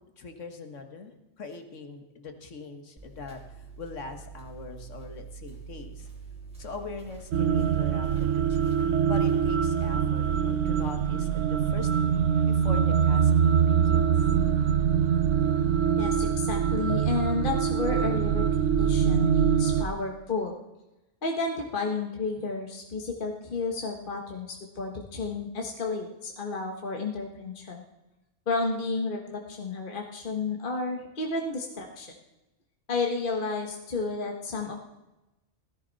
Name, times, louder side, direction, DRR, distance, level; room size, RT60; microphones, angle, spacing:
voice 1, 0.2-3.4 3.8-6.1 6.6-14.1, left 4 dB, 80° left, 6 dB, 1.8 m, -42 dB
sound 1, 3.0-14.6, right 5 dB, 5° right, 2.7 m, -48 dB
sound 2, 7.3-19.9, right 7 dB, 85° right, 1.2 m, -24 dB
voice 2, 16.0-20.6 21.2-27.8 28.5-32.1 32.9-34.8, left 3 dB, 45° left, 1 dB, 1.5 m, -32 dB
17.0 x 14.0 x 4.1 m, 0.97 s
omnidirectional pair, 1.3 m